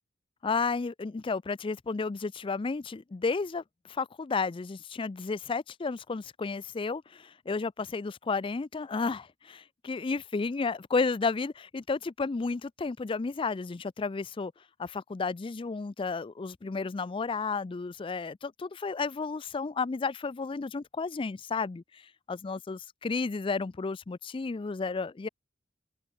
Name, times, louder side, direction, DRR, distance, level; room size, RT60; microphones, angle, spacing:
voice 1, 0.4-14.5 14.8-25.3, left 4 dB, 25° left, 0.4 m, -32 dB
head